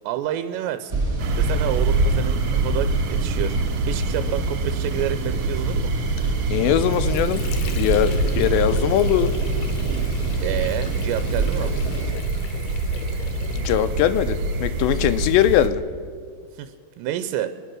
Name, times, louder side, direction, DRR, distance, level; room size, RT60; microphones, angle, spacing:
voice 1, 0.0-1.0 1.3-3.6 3.9-5.9 10.4-11.7 16.5-17.5, right 11 dB, 90° right, 10 dB, 2.8 m, -29 dB
sound 1, 0.9-12.1, right 3 dB, 45° right, 1.3 m, -27 dB
sound 2, 1.2-15.7, right 3 dB, 70° right, 1.9 m, -26 dB
voice 2, 6.5-7.4 7.7-9.3 13.6-15.8, left 11 dB, 85° left, 11 dB, 2.9 m, -21 dB
Water / Sink (filling or washing), 6.6-14.2, left 7 dB, 70° left, 2.1 m, -39 dB
24.0 x 9.4 x 6.1 m, 2.1 s
omnidirectional pair, 4.9 m